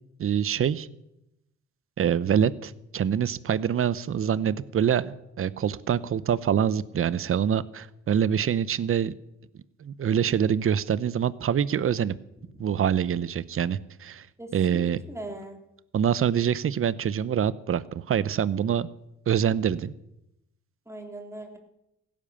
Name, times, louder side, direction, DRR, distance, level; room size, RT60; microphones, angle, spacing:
voice 1, 0.2-0.9 2.0-9.1 9.8-12.1 12.6-14.3 14.5-15.0 15.9-18.9 19.3-19.9, right 8 dB, 45° right, 18 dB, 0.8 m, -25 dB
voice 2, 14.4-15.6 20.9-21.6, right 1 dB, 10° right, 3 dB, 3.3 m, -40 dB
16.0 x 10.5 x 7.0 m, 0.86 s
cardioid pair, 90°, 30 cm